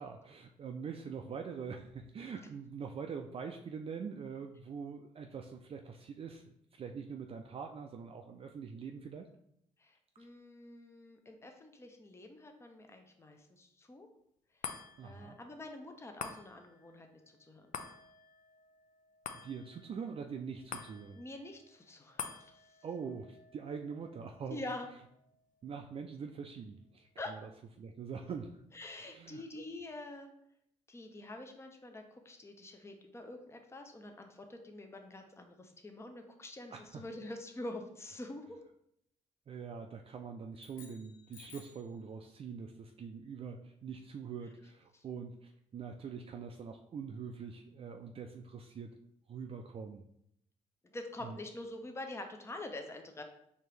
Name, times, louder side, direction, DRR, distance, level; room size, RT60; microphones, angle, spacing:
voice 1, 0.0-9.3 15.0-15.4 19.3-21.2 22.8-24.6 25.6-27.4 27.8-28.6 29.0-29.6 36.7-37.0 39.5-48.9 49.3-50.0 51.2-51.4, right 6 dB, 40° right, 4 dB, 0.4 m, -44 dB
voice 2, 9.8-14.1 15.0-17.1 17.4-17.7 21.2-22.5 24.5-24.9 27.2-27.4 28.7-30.3 30.9-38.6 44.9-45.0 50.9-53.2, left 2 dB, 20° left, 5 dB, 0.7 m, -46 dB
sound 1, 14.6-27.2 27.7-27.8, left 7 dB, 65° left, 0.5 m, -50 dB
sound 2, 40.5-41.9, left 6 dB, 85° left, 0.8 m, -56 dB
4.4 x 2.9 x 3.3 m, 0.73 s
supercardioid pair, 65°, 14 cm